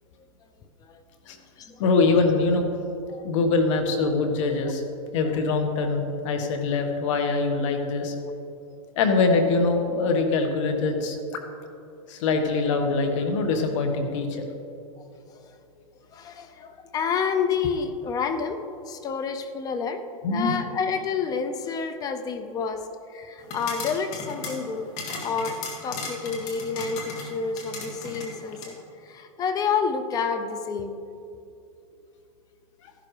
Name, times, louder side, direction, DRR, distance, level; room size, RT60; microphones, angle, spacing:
voice 1, 1.8-2.6 3.2-4.8 5.1-8.1 8.9-11.4 12.1-14.4 20.2-20.5, left 3 dB, 55° left, 5 dB, 1.5 m, -23 dB
voice 2, 16.1-22.8 23.1-24.9 25.2-28.7 29.0-31.0, left 6 dB, 20° left, 9 dB, 0.5 m, -29 dB
sound 1, 23.4-28.7, left 3 dB, 40° left, 2.1 m, -37 dB
13.5 x 11.5 x 3.3 m, 2.7 s
supercardioid pair, 145°, 19 cm